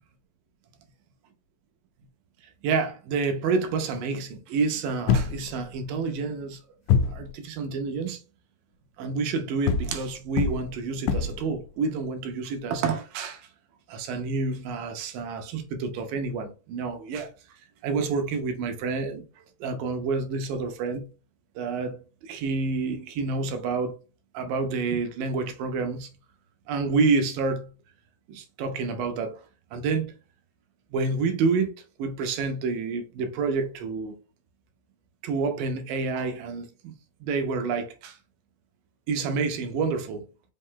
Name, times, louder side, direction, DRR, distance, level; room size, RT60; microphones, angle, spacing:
voice 1, 2.6-6.6 7.0-8.2 9.0-13.5 13.9-17.3 17.8-19.3 19.6-21.1 21.6-23.9 24.3-26.1 26.7-27.7 28.3-29.4 29.7-30.1 30.9-34.2 35.2-36.9 37.2-38.2 39.1-40.3, right 4 dB, 80° right, 2.3 m, -28 dB
sound 1, 5.1-5.8 6.9-7.3 9.7-11.5, left 6 dB, 80° left, 1.9 m, -25 dB
5.5 x 2.1 x 3.6 m
omnidirectional pair, 4.1 m